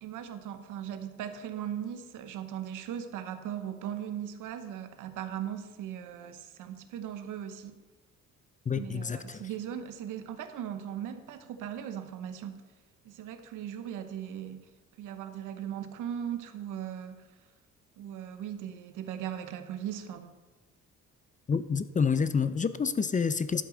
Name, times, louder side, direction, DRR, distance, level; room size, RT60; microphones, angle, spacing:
voice 1, 0.0-7.8 8.8-12.6 13.0-14.7 15.0-17.2 18.0-20.4, right 9 dB, 85° right, 9 dB, 1.0 m, -38 dB
voice 2, 8.7-9.4 21.5-23.6, left 5 dB, 25° left, 13 dB, 0.5 m, -28 dB
11.5 x 7.9 x 3.9 m, 1.2 s
cardioid pair, 90°, 30 cm